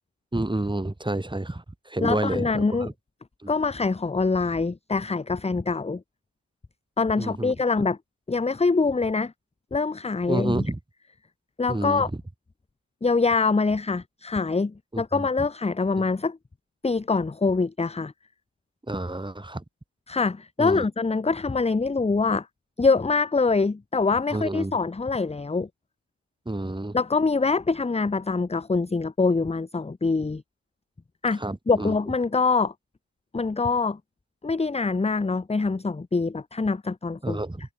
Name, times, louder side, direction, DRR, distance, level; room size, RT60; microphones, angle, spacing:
voice 1, 0.3-2.9 3.4-3.5 7.2-7.5 10.3-10.8 11.7-12.0 14.9-15.5 18.9-19.6 20.6-20.8 24.3-24.7 26.4-27.0 31.4-31.9 37.2-37.6, right 2 dB, 10° right, 5.0 m, -29 dB
voice 2, 2.0-2.9 3.5-6.0 7.0-8.0 8.3-9.3 9.7-10.7 11.6-12.1 13.0-16.4 16.8-18.1 20.1-22.5 22.8-25.7 26.9-30.4 31.2-31.4 31.7-32.7 33.3-34.0 34.4-37.4, left 4 dB, 15° left, 0.9 m, -24 dB
wide cardioid pair, 115°, 38 cm